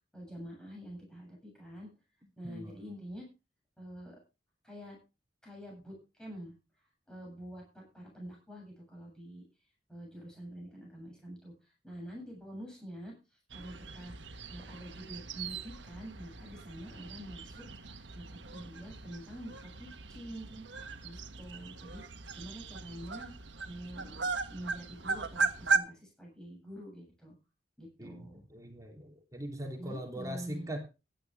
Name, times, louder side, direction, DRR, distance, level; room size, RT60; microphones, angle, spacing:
voice 1, 0.1-1.9 2.4-3.2 3.8-4.2 4.6-5.0 5.4-6.5 7.1-9.4 9.9-11.5 11.8-13.1 13.5-14.1 14.5-20.6 21.0-23.3 23.6-27.3 27.8-28.4 29.8-30.7, equal, 5° left, -2 dB, 7.9 m, -46 dB
voice 2, 2.4-2.9 28.0-30.8, equal, 20° right, 1 dB, 3.3 m, -41 dB
sound 1, 13.5-25.8, right 4 dB, 85° right, 1.4 m, -38 dB
15.5 x 12.0 x 3.5 m, 0.29 s
head